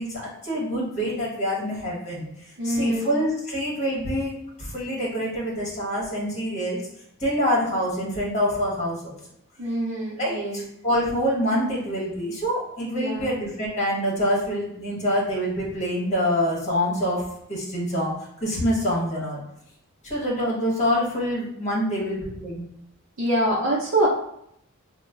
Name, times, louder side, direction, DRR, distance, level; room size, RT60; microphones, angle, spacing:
voice 1, 0.0-6.8 7.2-9.2 10.2-18.1 18.4-19.4 20.0-22.7, equal, 35° left, -4 dB, 1.2 m, -26 dB
voice 2, 2.6-3.1 9.6-10.6 12.9-13.3 23.2-24.1, right 1 dB, 70° right, -5 dB, 0.6 m, -25 dB
3.0 x 2.1 x 3.6 m, 0.73 s
head